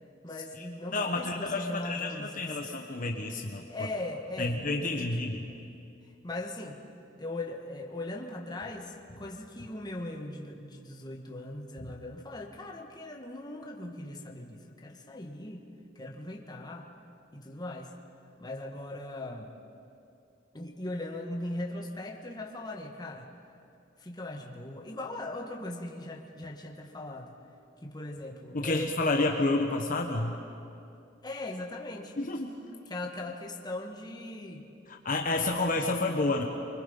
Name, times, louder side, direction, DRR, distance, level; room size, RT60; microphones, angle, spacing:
voice 1, 0.2-2.6 3.7-5.3 6.2-6.8 7.2-15.7 16.0-16.9 17.3-17.9 18.4-19.5 20.5-23.3 24.0-27.3 27.8-29.0 31.2-32.1 32.9-34.7, left 2 dB, 20° left, 0 dB, 1.8 m, -39 dB
voice 2, 0.9-3.6 4.4-5.4 11.8-11.9 28.5-30.3 32.2-32.6 34.9-36.4, left 2 dB, 45° left, 2 dB, 1.2 m, -29 dB
24.5 x 24.5 x 5.6 m, 2.6 s
head